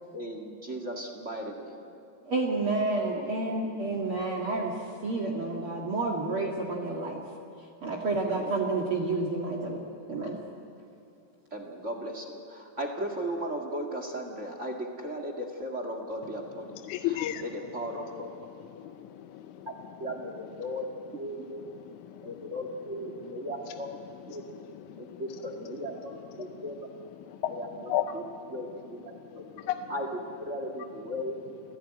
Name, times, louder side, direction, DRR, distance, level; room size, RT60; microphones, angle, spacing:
voice 1, 0.1-1.9 3.1-3.2 8.3-8.6 11.5-18.3 20.0-20.8 21.1-21.7 22.2-23.9 24.3-24.4 25.0-25.9 26.4-26.7 27.5-28.2 28.5-29.0 29.3-29.4 29.9-30.1 30.5-31.6, equal, 25° right, 4 dB, 1.7 m, -36 dB
voice 2, 2.2-4.7 5.0-7.2 7.8-9.8 10.1-10.4, right 3 dB, 45° right, 0 dB, 2.5 m, -30 dB
voice 3, 16.9-17.4 18.7-19.7 22.1-22.3 24.9-25.2 27.3-27.5 27.9-28.2 29.4-29.9, left 11 dB, 75° left, 7 dB, 2.0 m, -33 dB
29.0 x 16.0 x 9.1 m, 2.5 s
omnidirectional pair, 3.8 m